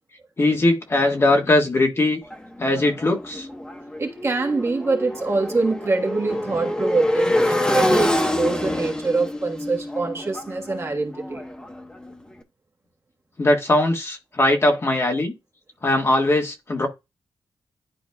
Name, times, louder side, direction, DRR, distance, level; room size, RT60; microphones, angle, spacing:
voice 1, 0.4-2.2 2.6-3.5 13.4-15.3 15.8-16.9, left 2 dB, 35° left, 1.6 m, -20 dB
Motorcycle, 2.3-12.1, left 1 dB, 10° left, 1.1 m, -26 dB
voice 2, 4.0-11.4, right 3 dB, 35° right, 1.5 m, -24 dB
11.0 x 4.0 x 2.3 m
wide cardioid pair, 110°, 8 cm